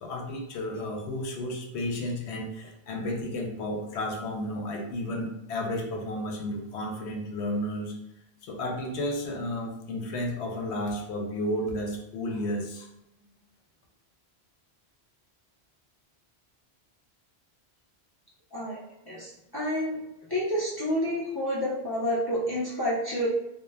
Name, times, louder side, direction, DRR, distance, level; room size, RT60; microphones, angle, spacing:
voice 1, 0.0-7.9 8.4-12.9, left 1 dB, 90° left, 1 dB, 0.9 m, -32 dB
voice 2, 19.1-19.9 20.3-23.3, equal, 35° left, -6 dB, 0.4 m, -29 dB
2.2 x 2.1 x 3.2 m, 0.83 s
omnidirectional pair, 1.1 m